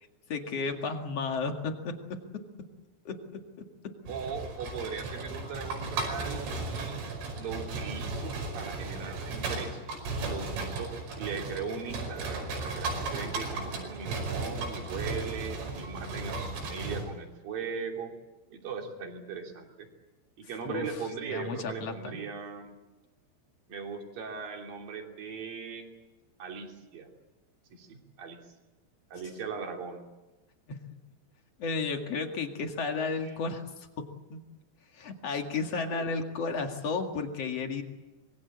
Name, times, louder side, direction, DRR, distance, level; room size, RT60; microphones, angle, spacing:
voice 1, 0.3-2.2 3.0-3.2 20.6-20.8 21.3-22.2 30.7-30.8 31.6-33.6 34.0-34.4 34.9-37.8, left 4 dB, 50° left, 4 dB, 2.1 m, -33 dB
voice 2, 4.1-7.0 7.4-18.1 18.5-19.9 20.4-22.8 23.7-25.9 26.4-27.1 27.7-28.4 29.1-30.1 33.2-33.4 35.9-36.0, right 6 dB, 50° right, 2 dB, 4.3 m, -39 dB
sound 1, 4.1-17.1, right 3 dB, 75° right, 7.8 m, -35 dB
26.5 x 22.0 x 8.6 m, 1.1 s
omnidirectional pair, 5.7 m